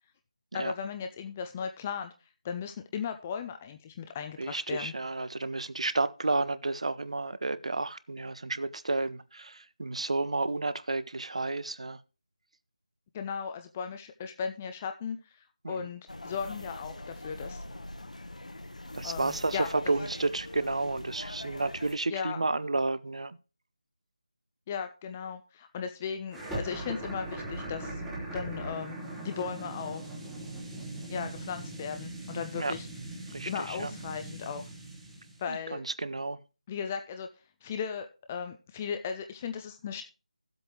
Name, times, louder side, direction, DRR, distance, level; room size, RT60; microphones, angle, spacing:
voice 1, 0.5-2.1 2.4-4.9 13.1-15.2 15.7-17.6 19.0-19.7 22.1-22.4 24.7-28.0 28.3-30.0 31.1-32.9 33.5-34.6 35.4-35.8 36.7-37.3 37.6-40.0, left 6 dB, 15° left, 0.4 m, -36 dB
voice 2, 4.4-12.0 15.6-15.9 18.9-23.4 32.5-32.8 33.3-34.0 35.5-36.4, right 3 dB, 60° right, 0.7 m, -31 dB
sound 1, 16.1-22.0, left 1 dB, 80° left, 1.0 m, -42 dB
sound 2, 26.3-35.4, right 2 dB, 5° right, 0.9 m, -40 dB
14.5 x 7.8 x 2.9 m
figure-of-eight pair, 165°, 4 cm